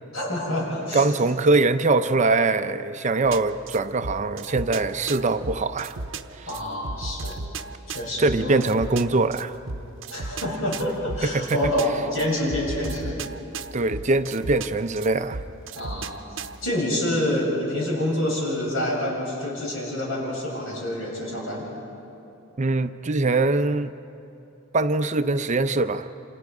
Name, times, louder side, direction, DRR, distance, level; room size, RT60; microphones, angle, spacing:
voice 1, 0.1-1.0 6.5-7.3 7.9-8.6 10.1-13.2 15.8-16.1 16.6-21.7, left 1 dB, 70° left, 7.6 m, -27 dB
voice 2, 0.9-6.0 6.3-6.5 8.2-9.6 11.2-11.6 13.7-15.4 22.6-23.9 24.7-26.1, right 3 dB, 35° right, 0.6 m, -22 dB
sound 1, 3.2-16.7, right 3 dB, 65° right, 0.8 m, -36 dB
28.5 x 27.5 x 4.9 m
head